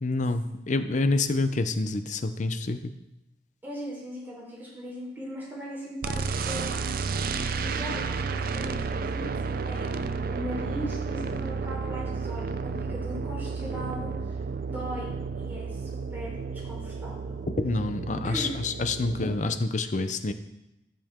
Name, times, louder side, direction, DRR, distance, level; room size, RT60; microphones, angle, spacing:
voice 1, 0.0-2.8 17.6-20.3, left 2 dB, 45° left, 9 dB, 0.6 m, -27 dB
voice 2, 3.6-6.8 7.5-14.1 14.7-15.1 15.4-17.4 18.2-18.5, equal, 10° right, -6 dB, 4.1 m, -39 dB
sound 1, 6.0-19.4, right 5 dB, 55° right, 0.5 m, -32 dB
13.5 x 6.7 x 3.7 m, 0.89 s
head